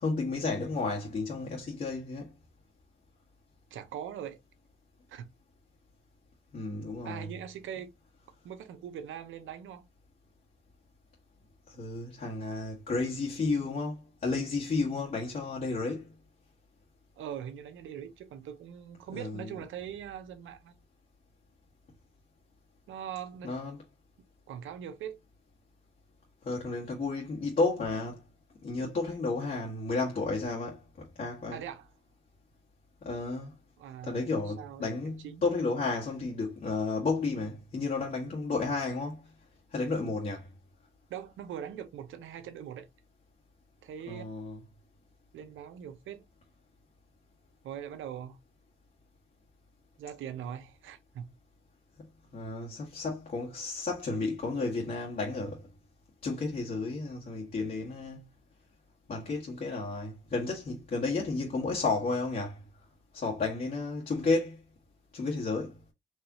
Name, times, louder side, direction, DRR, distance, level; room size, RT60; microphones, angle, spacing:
voice 1, 0.0-2.3 6.5-7.3 11.7-16.1 19.1-19.6 23.4-23.8 26.4-28.2 28.6-31.6 33.0-33.5 34.0-39.2 39.7-40.5 44.1-44.6 52.0-52.1 52.3-55.6 56.2-58.2 59.1-62.6 63.1-64.6 65.1-65.8, left 3 dB, 45° left, 1.5 m, -32 dB
voice 2, 3.7-4.4 5.1-5.3 7.0-7.9 8.4-9.8 17.2-20.7 22.9-23.5 24.5-25.2 31.5-31.9 33.8-35.4 41.1-42.9 43.8-44.2 45.3-46.2 47.6-48.4 50.0-51.3, right 9 dB, 80° right, 0.9 m, -41 dB
4.8 x 2.7 x 2.8 m
cardioid pair, 90°, 20 cm